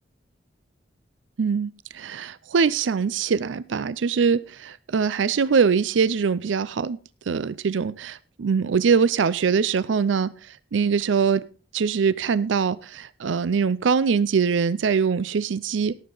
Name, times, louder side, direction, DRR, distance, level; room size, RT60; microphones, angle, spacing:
voice 1, 1.4-7.0 7.3-11.5 11.7-16.0, right 6 dB, 85° right, 18 dB, 0.5 m, -23 dB
18.0 x 7.3 x 3.9 m, 0.36 s
head